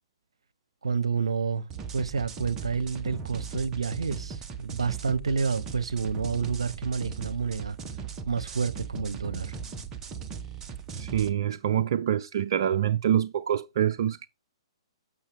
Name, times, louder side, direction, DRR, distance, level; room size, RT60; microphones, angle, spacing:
voice 1, 0.8-7.8 8.3-9.6, right 5 dB, 80° right, 0.8 m, -29 dB
sound 1, 1.7-11.3, right 6 dB, 20° right, 0.9 m, -38 dB
voice 2, 10.9-14.3, right 10 dB, 55° right, 0.5 m, -26 dB
7.2 x 6.3 x 3.4 m
hypercardioid pair, 130°, 3 cm